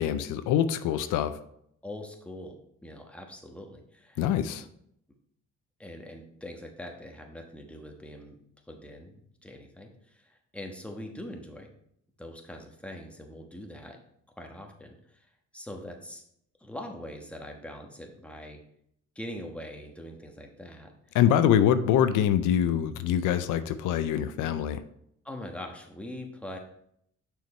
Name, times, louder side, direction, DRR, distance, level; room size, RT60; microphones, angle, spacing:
voice 1, 0.0-1.4 4.2-4.6 21.1-24.8, left 10 dB, 90° left, 11 dB, 0.5 m, -24 dB
voice 2, 1.8-4.2 5.8-8.4 8.7-11.7 12.2-14.0 14.4-15.3 15.5-16.2 16.6-18.6 19.1-21.2 25.2-26.6, left 1 dB, 5° left, 2 dB, 1.2 m, -42 dB
6.2 x 4.8 x 4.3 m, 0.72 s
cardioid pair, 90°, 30 cm